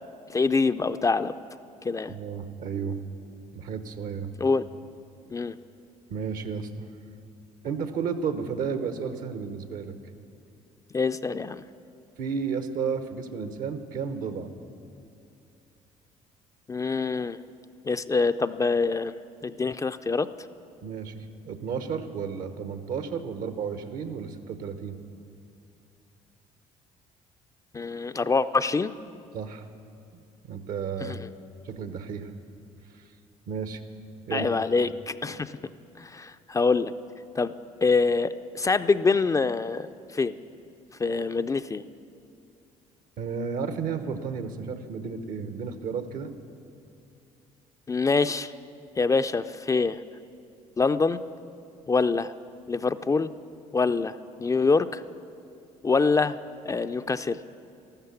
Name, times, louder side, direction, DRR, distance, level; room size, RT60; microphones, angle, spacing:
voice 1, 0.3-1.3 1.8-2.2 4.4-4.6 5.3-5.6 10.9-11.6 16.7-17.4 17.8-19.1 19.4-20.3 27.7-28.9 31.0-31.2 34.3-35.6 36.0-36.9 37.4-37.5 37.8-39.9 40.1-40.4 41.0-41.8 47.9-48.5 49.0-50.0 50.8-51.2 51.9-52.3 52.7-53.3 53.7-55.0 55.8-56.4 56.7-57.4, left 4 dB, 20° left, 10 dB, 0.4 m, -25 dB
voice 2, 2.1-3.0 3.5-4.3 6.1-6.9 7.6-9.9 12.2-14.5 20.8-25.0 29.3-29.7 30.1-31.3 31.6-32.3 32.9-33.1 33.5-33.8 34.3-34.6 43.2-46.3, right 6 dB, 70° right, 9 dB, 1.0 m, -32 dB
13.0 x 12.5 x 7.0 m, 2.6 s
supercardioid pair, 75°, 15 cm